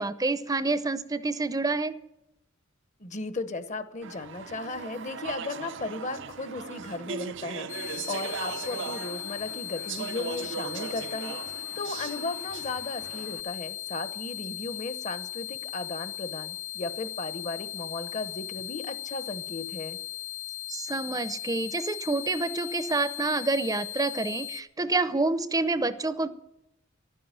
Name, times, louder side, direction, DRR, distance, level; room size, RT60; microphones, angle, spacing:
voice 1, 0.0-1.9 20.7-26.3, right 3 dB, 20° right, 13 dB, 0.7 m, -28 dB
voice 2, 3.0-20.0, left 3 dB, 40° left, 11 dB, 1.0 m, -36 dB
Speech / Chatter, 4.0-13.4, right 6 dB, 65° right, 0.6 m, -38 dB
sound 1, 7.7-24.6, left 14 dB, 85° left, 0.8 m, -38 dB
12.0 x 9.5 x 9.0 m, 0.86 s
head